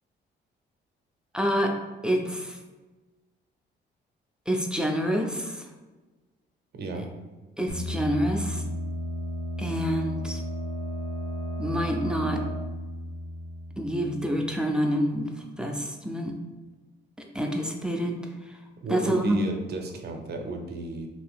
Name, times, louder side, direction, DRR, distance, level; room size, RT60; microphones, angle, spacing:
voice 1, 1.3-2.6 4.5-5.7 7.6-8.6 9.6-10.4 11.6-12.4 13.8-16.4 17.2-18.6 18.9-19.5, equal, 5° right, 2 dB, 0.4 m, -28 dB
voice 2, 6.7-7.1 18.8-21.1, right 3 dB, 55° right, 4 dB, 0.6 m, -33 dB
sound 1, 7.7-14.3, equal, 50° left, 1.1 m, -33 dB
2.8 x 2.7 x 3.5 m, 1.2 s
cardioid pair, 90°, 20 cm